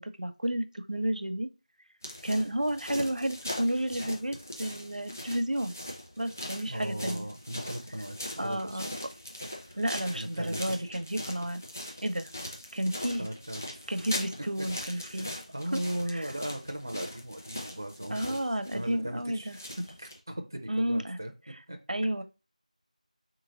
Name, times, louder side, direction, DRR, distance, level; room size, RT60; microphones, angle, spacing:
voice 1, 0.0-1.5 2.2-5.8 6.2-7.3 8.4-8.9 9.7-11.6 12.0-12.3 12.7-13.3 13.9-15.3 15.7-15.8 16.1-16.3 18.1-19.6 20.7-21.2 21.9-22.2, right 1 dB, 85° right, 0.7 m, -31 dB
sound 1, 2.0-20.2, left 1 dB, 20° left, 0.6 m, -41 dB
voice 2, 6.7-8.8 9.6-9.8 10.1-10.9 13.2-13.7 14.8-18.4 18.7-21.3 21.7-21.8, right 1 dB, 30° right, 0.4 m, -38 dB
3.9 x 2.9 x 3.8 m
figure-of-eight pair, 175°, 4 cm